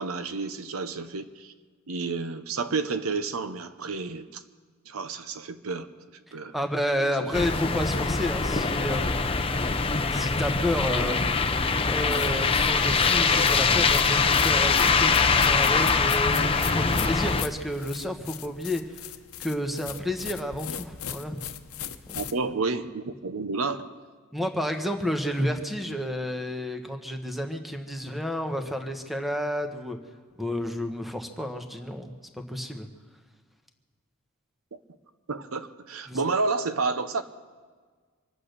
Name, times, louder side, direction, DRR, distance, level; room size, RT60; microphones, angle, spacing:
voice 1, 0.0-1.5 1.9-4.4 4.9-5.9 6.3-6.6 6.9-7.1 22.1-23.9 34.7-34.8 35.3-37.2, right 4 dB, 75° right, 10 dB, 0.8 m, -30 dB
voice 2, 6.5-9.2 10.1-11.2 11.9-18.8 19.4-21.4 22.1-22.2 24.3-30.0 30.4-32.9 36.1-36.2, equal, ahead, 5 dB, 1.1 m, -30 dB
sound 1, 7.3-17.4, left 4 dB, 25° left, 0.7 m, -23 dB
sound 2, 12.1-22.3, left 8 dB, 85° left, 0.8 m, -38 dB
25.0 x 8.6 x 6.7 m, 1.5 s
head